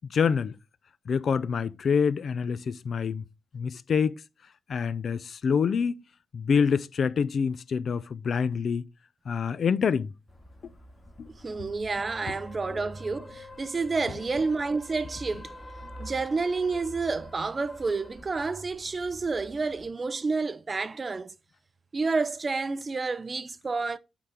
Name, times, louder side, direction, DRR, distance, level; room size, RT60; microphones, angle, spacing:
voice 1, 0.1-0.6 1.1-3.2 3.5-4.1 4.7-6.0 6.3-8.9 9.3-10.1 11.2-11.3, left 6 dB, 60° left, 0.5 m, -26 dB
sound 1, 10.3-19.9, left 1 dB, 25° left, 2.9 m, -46 dB
voice 2, 11.3-15.5 16.0-21.3 21.9-24.0, right 4 dB, 35° right, 0.5 m, -29 dB
8.3 x 3.9 x 4.4 m
cardioid pair, 115°, 0 cm